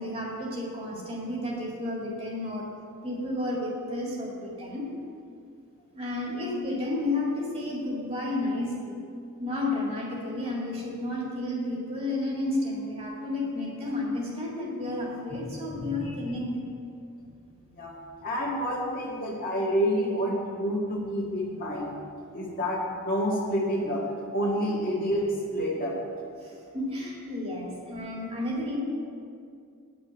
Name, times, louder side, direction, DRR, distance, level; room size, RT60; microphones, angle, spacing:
voice 1, 0.0-2.7 3.0-4.9 5.9-9.0 9.4-16.6 26.4-28.8, left 2 dB, 25° right, -3 dB, 1.9 m, -32 dB
voice 2, 15.7-16.1 17.8-17.9 18.2-21.9 22.3-24.0 24.3-25.3 25.5-26.0, equal, 40° left, -4 dB, 1.9 m, -28 dB
9.3 x 6.1 x 8.2 m, 2.4 s
head